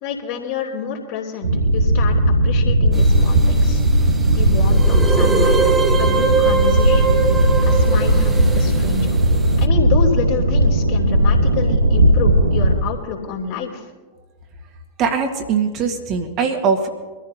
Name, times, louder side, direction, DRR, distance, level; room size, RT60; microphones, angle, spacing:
voice 1, 0.0-2.1 2.4-3.8 4.3-7.2 7.6-9.2 9.6-13.9, left 6 dB, 50° left, -1 dB, 3.2 m, -28 dB
sound 1, 1.4-12.8, right 1 dB, 75° right, 1.2 m, -16 dB
sound 2, 2.9-9.6, right 4 dB, 15° right, 1.2 m, -23 dB
voice 2, 15.0-16.9, right 6 dB, 35° right, 4 dB, 1.8 m, -21 dB
24.5 x 14.0 x 2.9 m, 1.3 s
figure-of-eight pair, 90°, 0 cm